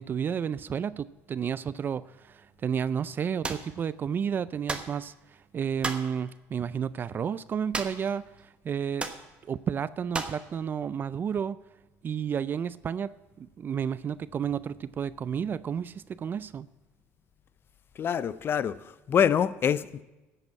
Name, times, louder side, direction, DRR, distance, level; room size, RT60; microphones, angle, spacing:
voice 1, 0.0-9.1 9.5-11.6 12.0-16.7, right 7 dB, 35° right, 17 dB, 0.3 m, -31 dB
sound 1, 3.4-3.7 4.7-5.0 5.8-6.1 7.7-8.1 8.4-8.5 9.0-9.2 10.1-10.4, right 3 dB, 20° right, 1.1 m, -33 dB
voice 2, 18.0-20.0, left 8 dB, 40° left, 17 dB, 0.5 m, -26 dB
10.5 x 7.8 x 8.3 m, 1.1 s
cardioid pair, 100°, 6 cm